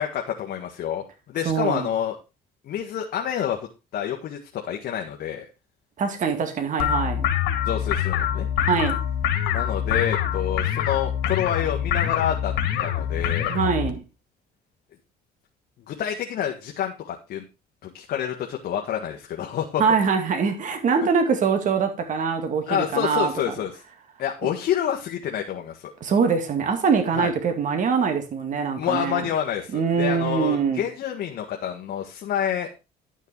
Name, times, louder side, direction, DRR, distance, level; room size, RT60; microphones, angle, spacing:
voice 1, 0.0-2.2 2.6-5.5 7.6-8.5 9.5-12.5 12.8-13.6 15.9-17.4 17.8-19.8 22.7-23.8 24.2-25.9 27.2-27.3 28.8-32.7, left 9 dB, 65° left, 1.6 m, -28 dB
voice 2, 1.5-1.9 6.0-7.3 8.6-8.9 13.5-14.0 19.8-23.5 26.0-29.2 29.7-30.8, right 6 dB, 50° right, 2.3 m, -23 dB
sound 1, 6.8-13.9, left 10 dB, 90° left, 2.1 m, -25 dB
11.5 x 6.5 x 4.6 m
cardioid pair, 110°, 17 cm